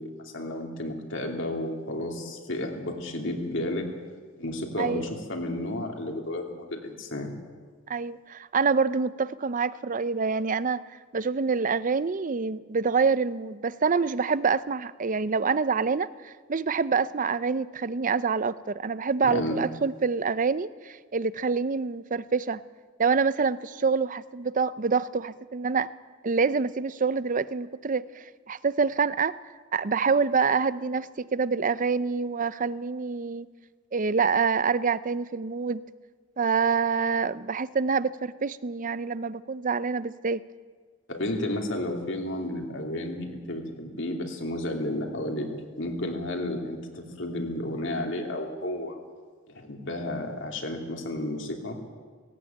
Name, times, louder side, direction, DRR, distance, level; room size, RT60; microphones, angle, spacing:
voice 1, 0.0-3.9 4.4-7.3 19.3-19.6 41.1-45.5 45.8-49.0 49.5-51.8, left 1 dB, 65° left, 2 dB, 2.9 m, -32 dB
voice 2, 7.9-10.8 11.1-22.6 23.0-25.9 26.2-29.3 29.7-33.5 33.9-35.8 36.4-40.4, right 5 dB, 40° right, 17 dB, 0.6 m, -26 dB
17.5 x 17.0 x 9.2 m, 1.5 s
head